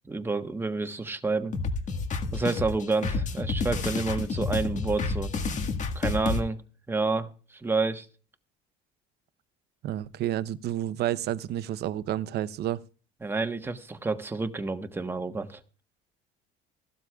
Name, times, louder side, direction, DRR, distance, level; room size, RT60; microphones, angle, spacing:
voice 1, 0.1-1.5 2.3-5.3 5.9-6.6 6.9-8.0 13.2-15.6, right 3 dB, 10° right, 1.2 m, -29 dB
sound 1, 1.5-6.4, left 4 dB, 35° left, 1.7 m, -29 dB
voice 2, 9.8-12.8, right 12 dB, 50° right, 0.8 m, -30 dB
16.5 x 12.5 x 2.4 m
cardioid pair, 120°, 21 cm